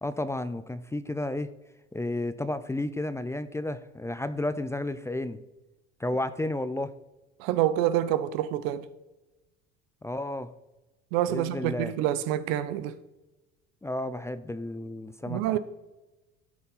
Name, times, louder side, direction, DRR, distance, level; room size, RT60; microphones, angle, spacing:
voice 1, 0.0-1.5 1.9-5.4 6.0-6.9 10.0-10.5 11.3-11.9 13.8-15.4, left 1 dB, 10° left, 0.5 m, -32 dB
voice 2, 7.4-8.9 11.1-13.0 15.3-15.6, right 12 dB, 70° right, 0.8 m, -27 dB
12.5 x 4.4 x 5.5 m
hypercardioid pair, 80°, 32 cm